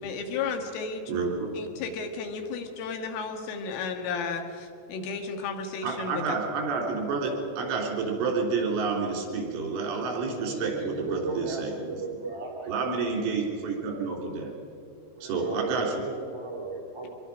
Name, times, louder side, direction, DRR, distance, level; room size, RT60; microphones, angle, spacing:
voice 1, 0.0-1.1 1.5-6.2, left 5 dB, 90° left, 4 dB, 4.3 m, -33 dB
voice 2, 1.1-1.5 5.8-11.7 12.7-14.5 15.2-15.9, right 4 dB, 80° right, 0 dB, 6.2 m, -29 dB
voice 3, 10.3-12.9 15.1-17.1, right 3 dB, 10° right, -1 dB, 1.4 m, -36 dB
24.5 x 22.5 x 5.2 m, 2.7 s
omnidirectional pair, 5.6 m